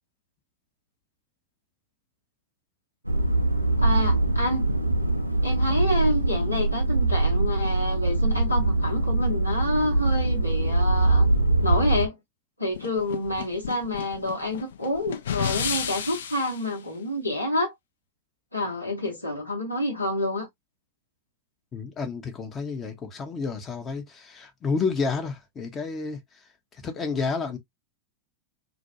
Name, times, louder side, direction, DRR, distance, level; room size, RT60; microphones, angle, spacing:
sound 1, 3.1-12.1, right 2 dB, 85° right, 0.4 m, -23 dB
voice 1, 3.8-4.7 5.4-11.3 11.6-12.2 12.6-17.7 18.5-20.5, left 1 dB, 85° left, 0.9 m, -28 dB
sound 2, 12.7-16.6, left 9 dB, 60° left, 0.3 m, -32 dB
voice 2, 21.7-27.6, left 4 dB, 25° left, 0.7 m, -30 dB
2.4 x 2.2 x 2.7 m
figure-of-eight pair, 90°, 0 cm